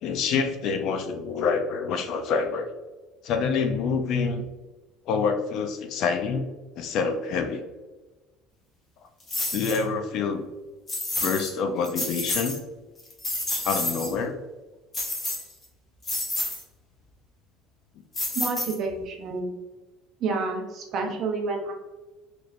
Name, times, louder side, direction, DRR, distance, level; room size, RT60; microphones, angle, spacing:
voice 1, 0.0-2.7 3.2-4.4 5.1-6.5 6.8-7.6 9.5-10.4 11.2-12.6 13.6-14.4, left 5 dB, 50° left, 7 dB, 0.4 m, -26 dB
sound 1, 9.3-9.8 10.9-11.5 11.8-12.6 13.0-14.1 14.9-15.6 16.0-16.6 18.1-19.0, left 2 dB, 20° left, 0.9 m, -29 dB
voice 2, 18.3-19.6 20.2-21.7, right 3 dB, 40° right, 2 dB, 0.7 m, -29 dB
4.1 x 3.2 x 2.4 m, 1.2 s
cardioid pair, 165°, 0 cm